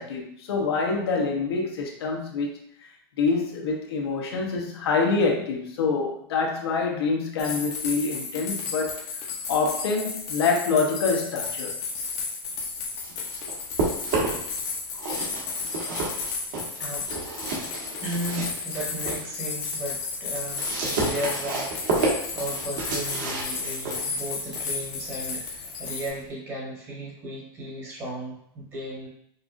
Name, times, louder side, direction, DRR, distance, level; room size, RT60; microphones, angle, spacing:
voice 1, 0.0-2.6 3.2-9.0 9.5-11.7, left 4 dB, 85° left, 0 dB, 0.9 m, -26 dB
sound 1, 7.4-26.1, left 4 dB, 25° left, 0.7 m, -33 dB
sound 2, 12.8-14.6 14.9-19.3 19.7-26.3, right 3 dB, 50° right, 1.3 m, -31 dB
voice 2, 16.8-17.1 18.0-29.1, right 1 dB, 20° right, -5 dB, 1.2 m, -35 dB
5.4 x 2.5 x 2.5 m, 0.71 s
supercardioid pair, 170°, 13 cm